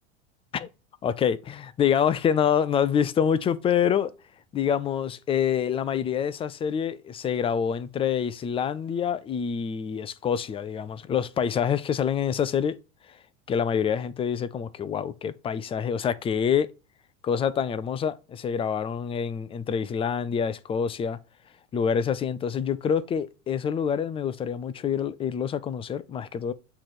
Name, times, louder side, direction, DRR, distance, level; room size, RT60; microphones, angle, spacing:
voice 1, 1.0-4.1 4.5-12.8 13.5-16.7 17.2-21.2 21.7-26.5, left 8 dB, 15° left, 0.4 m, -26 dB
7.7 x 3.3 x 4.3 m
hypercardioid pair, 100°, 41 cm